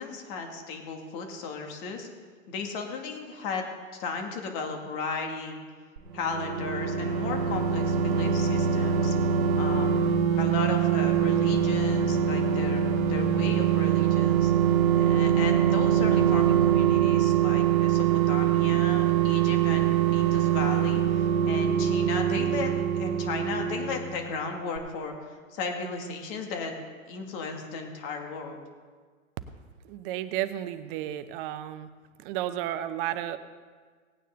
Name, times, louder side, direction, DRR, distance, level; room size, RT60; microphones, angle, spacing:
voice 1, 0.0-2.1 2.5-3.7 3.9-5.6 6.1-9.1 9.6-10.1 10.3-14.5 15.0-25.1 25.5-26.8 27.1-28.6, left 4 dB, 45° left, 3 dB, 2.3 m, -35 dB
sound 1, 6.0-24.5 24.8-24.9, right 9 dB, 75° right, 1.0 m, -24 dB
voice 2, 29.8-31.9 32.2-33.4, right 12 dB, 40° right, 12 dB, 0.8 m, -32 dB
18.0 x 9.2 x 3.9 m, 1.5 s
hypercardioid pair, 110°, 42 cm